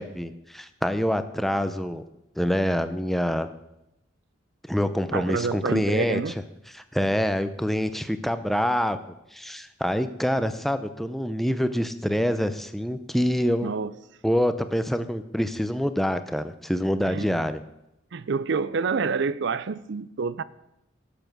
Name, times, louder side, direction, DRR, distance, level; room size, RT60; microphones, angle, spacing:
voice 1, 0.0-2.0 2.4-3.5 4.7-6.2 6.9-9.0 9.3-13.7 14.2-17.6, equal, ahead, 0.5 m, -26 dB
voice 2, 5.1-6.4 13.6-13.9 17.0-17.3 18.1-20.4, right 5 dB, 60° right, 0.5 m, -28 dB
11.5 x 7.0 x 6.1 m
head